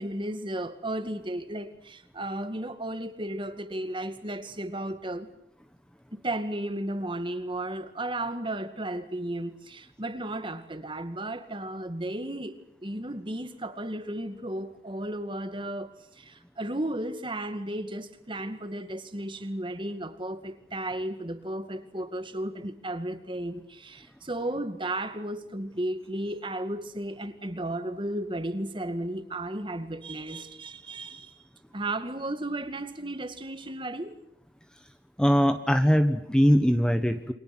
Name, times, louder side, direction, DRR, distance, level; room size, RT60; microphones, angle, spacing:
voice 1, 0.0-5.3 6.1-31.4 31.7-34.2, right 1 dB, 30° right, 2.1 m, -34 dB
voice 2, 35.2-37.3, equal, 5° left, 1.3 m, -21 dB
30.0 x 25.0 x 6.1 m
head